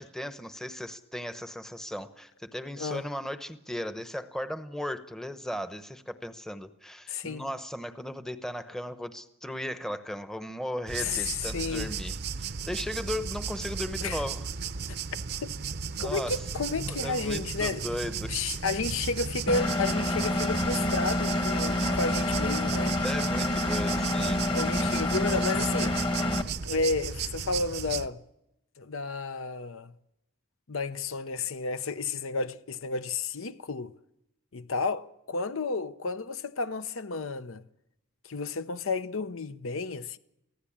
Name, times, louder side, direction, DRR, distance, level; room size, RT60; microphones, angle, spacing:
voice 1, 0.0-14.4 16.0-16.4 16.9-18.3 23.0-24.4, left 1 dB, ahead, 0.9 m, -36 dB
voice 2, 7.1-7.4 11.0-11.9 14.0-14.2 15.4-15.5 16.0-17.8 18.3-23.0 24.5-26.0 26.6-28.2 28.8-29.9 30.7-33.9 34.5-37.6 38.3-40.2, left 4 dB, 70° left, 0.8 m, -32 dB
sound 1, 10.9-28.1, right 6 dB, 50° right, 0.7 m, -35 dB
Engine, 19.5-26.4, left 1 dB, 20° left, 1.2 m, -28 dB
24.0 x 15.5 x 8.7 m
head